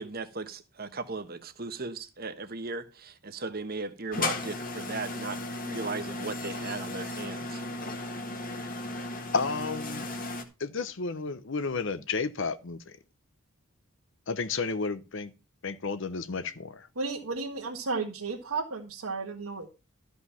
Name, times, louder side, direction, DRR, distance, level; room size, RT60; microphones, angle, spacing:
voice 1, 0.0-7.6, right 3 dB, 45° right, 1.2 m, -37 dB
sound 1, 4.1-10.4, left 2 dB, 40° left, 1.7 m, -35 dB
voice 2, 9.3-10.1 10.6-13.0 14.3-15.3 15.6-16.9, left 4 dB, 60° left, 0.8 m, -32 dB
voice 3, 17.0-19.7, right 4 dB, 80° right, 1.7 m, -33 dB
13.5 x 5.4 x 5.6 m
head